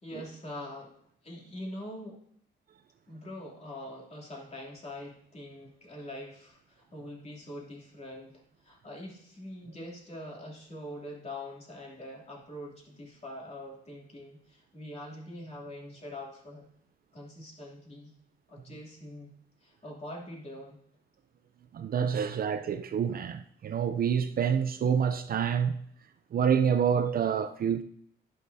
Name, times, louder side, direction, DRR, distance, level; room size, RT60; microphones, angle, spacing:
voice 1, 0.0-0.9 1.2-2.2 3.1-16.6 17.1-18.1 18.5-19.3 19.6-20.8 22.1-22.2, left 1 dB, 30° left, 2.9 m, -43 dB
voice 2, 21.7-25.8 26.3-27.8, right 7 dB, 50° right, 0.6 m, -27 dB
11.0 x 9.8 x 2.7 m
cardioid pair, 90°, 20 cm